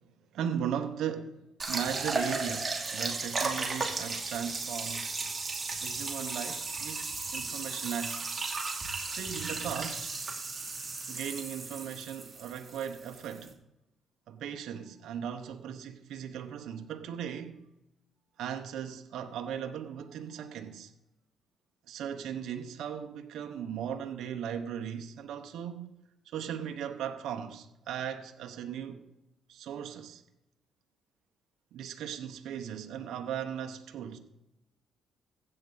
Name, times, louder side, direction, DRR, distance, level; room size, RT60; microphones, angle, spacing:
voice 1, 0.3-1.4 1.7-5.1 5.8-8.4 9.1-10.1 11.1-13.5 14.3-17.6 18.4-20.9 21.9-25.9 26.3-29.0 29.5-30.2 31.7-34.2, right 8 dB, 80° right, 0.9 m, -37 dB
sound 1, 1.6-13.5, right 3 dB, 25° right, 2.6 m, -35 dB
15.5 x 7.7 x 4.0 m
cardioid pair, 90°, 0 cm